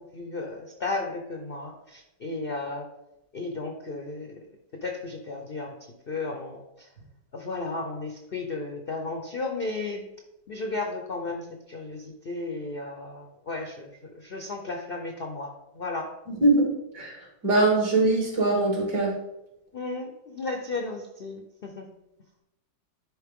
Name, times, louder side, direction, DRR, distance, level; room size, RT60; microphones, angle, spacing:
voice 1, 0.1-1.7 2.2-2.8 3.3-4.3 4.8-5.7 6.1-6.6 7.4-10.1 10.5-11.4 11.7-12.0 12.3-13.9 14.3-15.5 15.8-16.1 19.7-20.1 20.3-21.4 21.8-21.9, left 3 dB, 55° left, 3 dB, 0.6 m, -33 dB
voice 2, 16.3-17.1 17.4-19.1, right 2 dB, 65° right, -2 dB, 2.9 m, -22 dB
10.5 x 4.3 x 3.7 m, 0.88 s
omnidirectional pair, 2.0 m